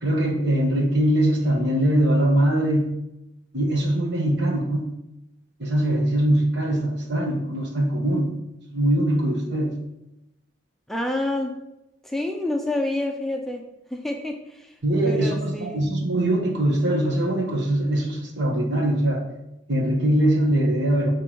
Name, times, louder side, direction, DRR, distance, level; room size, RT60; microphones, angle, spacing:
voice 1, 0.0-2.9 3.5-4.9 5.6-8.4 8.7-9.7 14.8-19.2 19.7-21.1, right 1 dB, 60° right, 0 dB, 1.4 m, -22 dB
voice 2, 10.9-11.6 12.0-13.6 13.9-14.7 15.0-16.0, left 1 dB, ahead, 2 dB, 0.5 m, -28 dB
6.6 x 3.5 x 6.0 m, 0.89 s
head